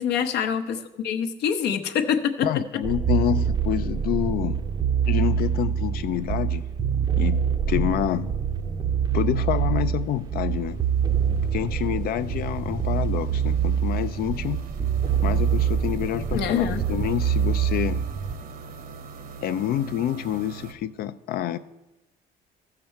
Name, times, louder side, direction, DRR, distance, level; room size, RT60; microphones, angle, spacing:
voice 1, 0.0-2.5 16.3-16.8, left 8 dB, 80° left, 7 dB, 0.8 m, -25 dB
voice 2, 2.4-4.6 5.1-6.7 7.1-8.3 9.1-10.8 11.5-14.7 15.2-18.0 19.4-21.6, left 11 dB, 65° left, 12 dB, 0.4 m, -27 dB
sound 1, 2.8-18.3, right 8 dB, 25° right, 0.6 m, -25 dB
sound 2, 4.0-4.3 4.5-20.7, right 5 dB, 60° right, 0.9 m, -44 dB
13.5 x 6.8 x 4.5 m, 0.99 s
cardioid pair, 110°, 17 cm